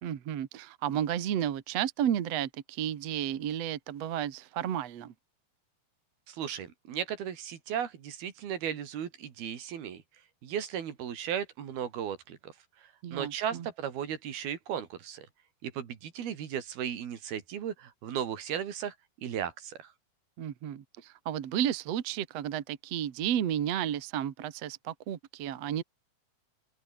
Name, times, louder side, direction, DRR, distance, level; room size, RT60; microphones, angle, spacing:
voice 1, 0.0-5.1 13.0-13.7 20.4-25.8, right 10 dB, 55° right, 2.3 m, -32 dB
voice 2, 6.3-10.0 10.4-12.5 13.1-15.3 15.6-18.9 19.2-19.9, right 9 dB, 80° right, 4.5 m, -36 dB
omnidirectional pair, 4.4 m